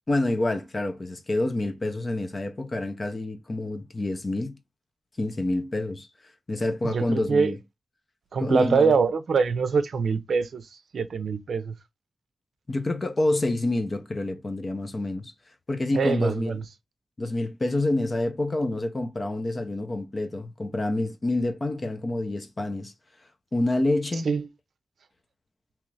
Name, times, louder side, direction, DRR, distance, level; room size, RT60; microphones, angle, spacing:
voice 1, 0.1-4.5 5.2-6.1 6.5-7.6 8.4-8.9 12.7-15.3 15.7-16.6 17.2-22.9 23.5-24.3, left 2 dB, 35° left, 0.6 m, -27 dB
voice 2, 6.8-7.5 8.3-10.7 10.9-11.7 15.9-16.6 24.2-24.4, right 5 dB, 80° right, 0.4 m, -24 dB
2.9 x 2.4 x 3.1 m
wide cardioid pair, 115°, 0 cm